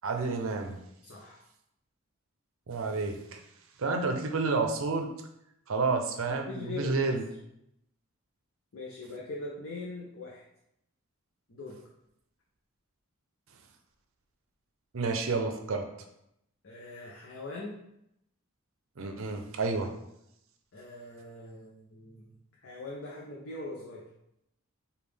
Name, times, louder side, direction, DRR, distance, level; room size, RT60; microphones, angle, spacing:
voice 1, 0.0-0.8 2.7-3.4 3.8-5.1 5.7-7.2 14.9-15.9 19.0-19.9, right 3 dB, 65° right, 4 dB, 0.5 m, -30 dB
voice 2, 1.0-1.4 6.3-7.1 8.7-10.4 11.5-11.8 16.6-17.8 20.7-22.3 22.6-24.0, left 2 dB, 60° left, -4 dB, 0.6 m, -41 dB
5.1 x 2.3 x 3.4 m, 0.79 s
head